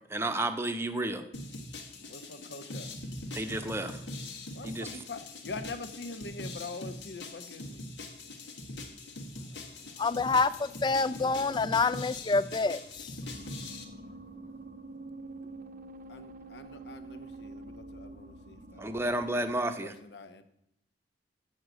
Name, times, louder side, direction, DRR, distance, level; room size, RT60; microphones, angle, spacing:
voice 1, 0.1-1.2 3.3-4.0 4.6-4.9 18.8-19.9, right 1 dB, 15° right, 8 dB, 0.7 m, -31 dB
sound 1, 1.3-13.8, left 2 dB, 90° left, 1.5 m, -42 dB
voice 2, 2.1-3.0 4.5-7.8 11.2-11.6 16.1-18.9 19.3-19.4 19.6-20.4, left 3 dB, 70° left, 10 dB, 0.9 m, -44 dB
voice 3, 10.0-13.1, left 4 dB, 25° left, 16 dB, 0.3 m, -27 dB
sound 2, 13.2-19.5, right 2 dB, 50° right, 0.7 m, -46 dB
7.4 x 6.4 x 8.0 m, 0.76 s
head